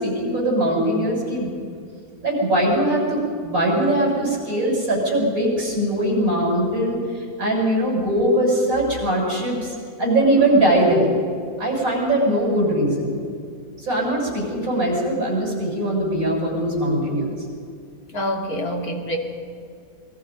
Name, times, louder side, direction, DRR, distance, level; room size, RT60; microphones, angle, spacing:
voice 1, 0.0-1.5 2.2-7.0 7.4-9.7 10.0-11.1 11.6-13.2 13.8-17.3, right 1 dB, 65° right, -1 dB, 7.7 m, -21 dB
voice 2, 18.1-19.2, equal, 80° left, 2 dB, 3.2 m, -26 dB
28.0 x 22.5 x 5.3 m, 2.2 s
omnidirectional pair, 1.5 m